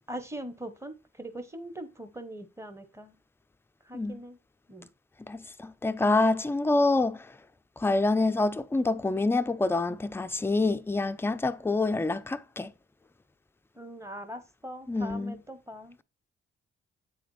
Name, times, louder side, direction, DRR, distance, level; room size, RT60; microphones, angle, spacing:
voice 1, 0.1-3.1 3.9-4.4 4.7-4.9 13.8-16.0, right 1 dB, 10° right, 0.9 m, -41 dB
voice 2, 5.3-7.3 7.8-12.7 14.9-15.4, left 2 dB, 10° left, 0.4 m, -26 dB
8.1 x 3.9 x 3.1 m
supercardioid pair, 50°, 29 cm